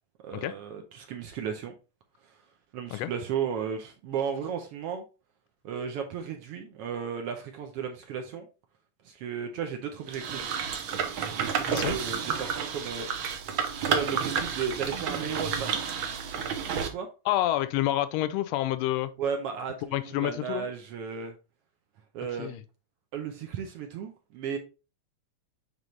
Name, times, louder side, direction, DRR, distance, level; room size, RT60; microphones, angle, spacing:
voice 1, 0.2-1.7 2.7-5.0 5.6-8.5 9.0-10.5 11.3-13.1 13.8-15.8 16.6-17.1 19.2-21.3 22.1-22.6 23.1-24.6, right 7 dB, 75° right, 1.4 m, -34 dB
sound 1, 10.1-16.9, right 7 dB, 90° right, 1.1 m, -30 dB
voice 2, 11.7-12.0 17.2-19.1 19.9-20.7 22.4-22.6, left 14 dB, 80° left, 1.5 m, -28 dB
9.2 x 3.5 x 3.2 m
omnidirectional pair, 3.5 m